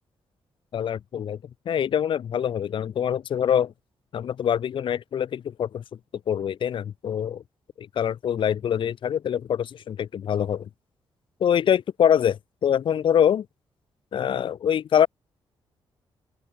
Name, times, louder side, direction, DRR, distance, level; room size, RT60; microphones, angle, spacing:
voice 1, 0.7-1.4 1.7-3.7 4.1-5.8 6.3-7.4 7.8-10.7 11.4-13.4 14.1-15.1, left 9 dB, 60° left, 1.0 m, -24 dB
open air
cardioid pair, 110°, 10 cm